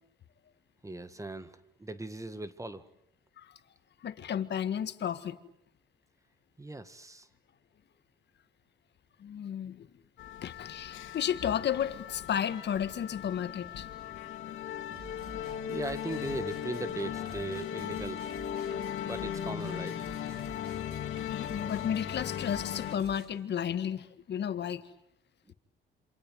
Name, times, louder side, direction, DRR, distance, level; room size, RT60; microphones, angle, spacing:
voice 1, 0.8-2.9 6.6-7.3 15.7-18.4 19.0-20.0 25.5-25.6, right 2 dB, 15° right, 12 dB, 1.8 m, -39 dB
voice 2, 4.0-5.4 9.2-9.9 10.4-13.9 21.3-24.8, left 9 dB, 60° left, 11 dB, 1.8 m, -33 dB
sound 1, 10.2-23.0, left 10 dB, 75° left, 2.7 m, -38 dB
sound 2, 14.9-23.3, right 3 dB, 55° right, 6.0 m, -51 dB
27.5 x 26.0 x 8.1 m, 0.76 s
cardioid pair, 90°, 20 cm